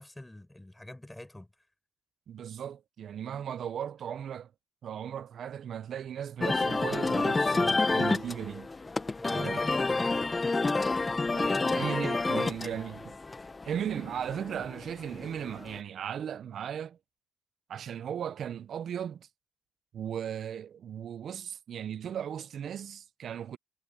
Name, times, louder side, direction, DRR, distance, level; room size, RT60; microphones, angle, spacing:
voice 1, 0.0-1.5 9.2-10.3 11.4-12.8, left 1 dB, 10° left, 5.8 m, -44 dB
voice 2, 2.3-4.5 4.8-8.7 9.3-9.6 11.3-13.1 13.7-17.0 17.7-19.3 19.9-23.6, right 9 dB, 60° right, 0.7 m, -37 dB
sound 1, 6.4-15.8, left 3 dB, 25° left, 1.4 m, -29 dB
supercardioid pair, 70°, 0 cm